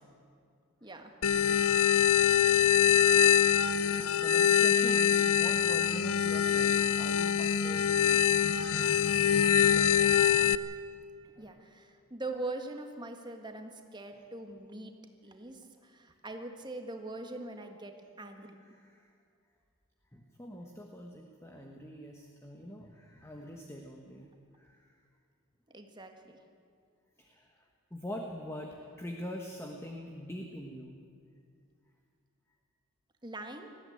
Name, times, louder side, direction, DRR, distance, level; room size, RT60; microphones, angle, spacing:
voice 1, 0.8-1.1 9.7-10.2 11.4-14.9 15.2-18.5 25.7-26.4 33.2-33.7, right 2 dB, 20° right, 5 dB, 1.6 m, -42 dB
sound 1, 1.2-10.6, left 9 dB, 80° left, 0.6 m, -24 dB
voice 2, 1.7-2.0 2.4-2.6 3.4-3.6 4.2-8.2 9.6-9.8 11.2-11.5 18.6-19.1 20.1-24.3 24.5-25.0 27.2-27.6 27.9-31.0, equal, 10° left, 2 dB, 1.3 m, -44 dB
19.5 x 15.0 x 9.4 m, 2.3 s
head